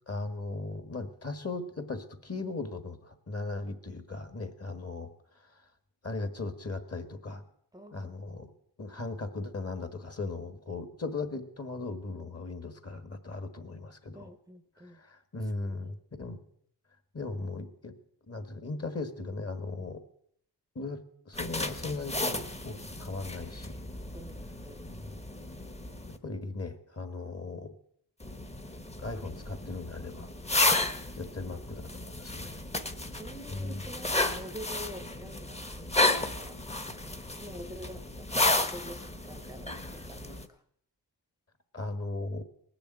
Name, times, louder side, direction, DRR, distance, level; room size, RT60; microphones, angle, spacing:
voice 1, 0.1-5.1 5.4-5.6 6.0-7.4 7.9-8.5 8.8-14.3 14.8-16.4 17.1-17.9 18.3-20.0 20.7-21.0 21.2-23.8 25.0-25.2 26.2-27.7 29.0-30.3 31.2-32.6 33.5-33.8 41.7-42.4, left 3 dB, 35° left, 9 dB, 1.6 m, -38 dB
voice 2, 7.7-8.1 14.1-15.0 15.3-16.0 24.1-24.8 30.8-31.0 32.4-32.6 33.1-36.6 37.0-40.6, equal, 10° right, 8 dB, 0.8 m, -47 dB
sound 1, 21.3-26.2 28.2-40.5, left 2 dB, 15° left, 1.0 m, -33 dB
19.5 x 7.0 x 9.1 m, 0.68 s
wide cardioid pair, 110°, 41 cm